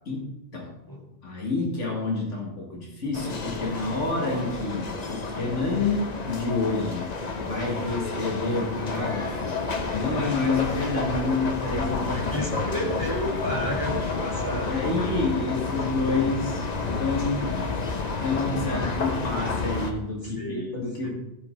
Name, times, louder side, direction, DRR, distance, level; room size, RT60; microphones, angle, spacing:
voice 1, 1.2-7.1 7.4-9.6 9.9-12.5 14.6-16.7 17.0-17.5 18.2-21.1, left 3 dB, 80° left, -2 dB, 2.2 m, -28 dB
sound 1, 3.1-19.9, left 4 dB, 40° left, 0.9 m, -30 dB
voice 2, 12.0-14.7 20.2-20.7 21.0-21.1, equal, 15° left, -1 dB, 2.0 m, -32 dB
15.0 x 5.2 x 3.8 m, 0.91 s
omnidirectional pair, 1.2 m